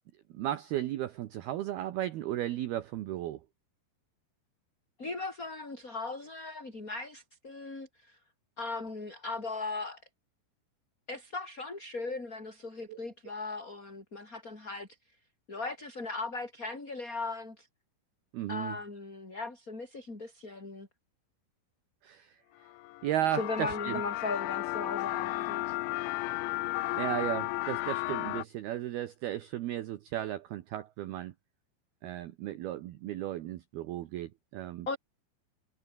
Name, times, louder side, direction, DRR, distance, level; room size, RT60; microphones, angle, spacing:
voice 1, 0.3-3.4 12.9-13.0 18.3-18.8 22.0-22.4 23.0-24.0 27.0-31.3 32.0-34.9, right 13 dB, 75° right, 2.4 m, -35 dB
voice 2, 5.0-8.2 8.6-10.0 11.1-14.9 15.5-17.7 18.5-20.9 23.4-25.8 34.9-35.0, left 3 dB, 15° left, 5.6 m, -38 dB
sound 1, 22.7-28.4, left 19 dB, 80° left, 2.9 m, -34 dB
omnidirectional pair, 5.8 m